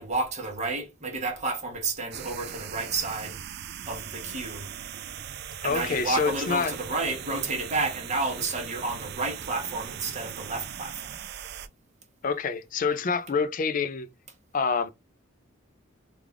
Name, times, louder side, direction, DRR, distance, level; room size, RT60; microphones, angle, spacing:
voice 1, 0.0-3.4 3.9-4.7 5.6-11.2, right 3 dB, 35° right, 1.0 m, -31 dB
sound 1, 2.1-11.7, right 9 dB, 50° right, 0.3 m, -40 dB
voice 2, 5.6-6.7 12.2-14.1 14.5-14.9, left 5 dB, 40° left, 0.4 m, -27 dB
3.3 x 2.4 x 3.5 m
head